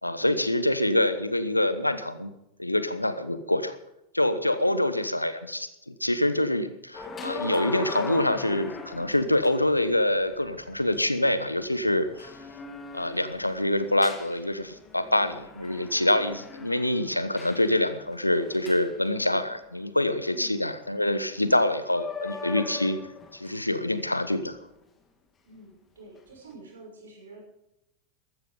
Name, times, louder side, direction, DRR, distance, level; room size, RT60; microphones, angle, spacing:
voice 1, 0.0-2.3 2.6-3.7 4.1-12.3 12.9-23.0 23.3-24.6, left 1 dB, 85° left, 12 dB, 1.1 m, -26 dB
sound 1, 6.9-19.7 21.5-21.6 21.9-23.7 24.4-24.6, left 4 dB, 20° left, 2.2 m, -40 dB
voice 2, 25.4-27.4, right 3 dB, 65° right, -1 dB, 6.2 m, -48 dB
14.5 x 13.0 x 5.1 m, 0.86 s
figure-of-eight pair, 90°, 0 cm